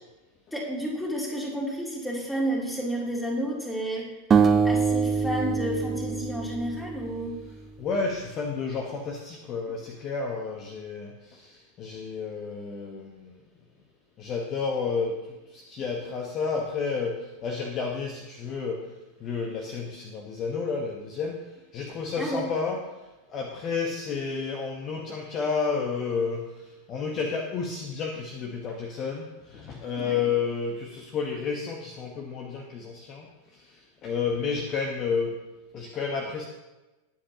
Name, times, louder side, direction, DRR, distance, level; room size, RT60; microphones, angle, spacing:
voice 1, 0.5-4.1 4.6-7.4 22.2-22.5 30.0-30.2, equal, 5° left, -2 dB, 3.0 m, -31 dB
sound 1, 4.3-7.5, right 5 dB, 20° right, 0.8 m, -24 dB
voice 2, 7.8-13.4 14.2-15.2 15.5-18.9 19.2-21.4 21.7-22.8 23.3-26.4 26.9-33.3 33.5-33.7 34.0-35.3 35.7-36.5, left 5 dB, 30° left, 2 dB, 1.2 m, -31 dB
19.5 x 7.8 x 2.9 m, 1.1 s
figure-of-eight pair, 90°, 0 cm